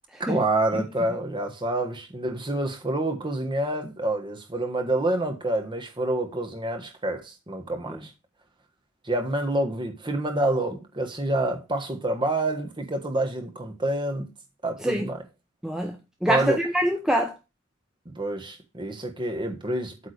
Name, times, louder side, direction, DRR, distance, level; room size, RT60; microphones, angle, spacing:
voice 1, 0.2-8.1 9.0-14.3 14.6-15.2 16.3-16.6 18.0-20.1, right 1 dB, 20° right, 1.4 m, -27 dB
voice 2, 15.6-17.3, equal, 5° right, 0.7 m, -25 dB
8.5 x 3.7 x 6.5 m
head